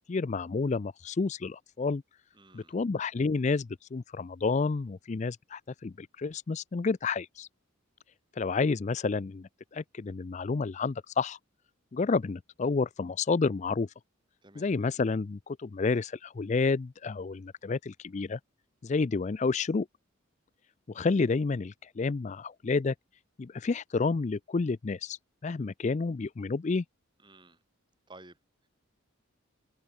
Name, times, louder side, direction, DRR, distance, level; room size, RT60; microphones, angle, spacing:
voice 1, 0.1-2.0 2.5-7.5 8.4-11.4 11.9-13.9 14.6-18.4 18.8-19.9 20.9-22.9 23.4-26.8, left 4 dB, 35° left, 0.4 m, -30 dB
voice 2, 2.3-2.8 14.4-14.7 27.2-27.6 28.1-28.7, right 2 dB, 20° right, 6.0 m, -54 dB
open air
head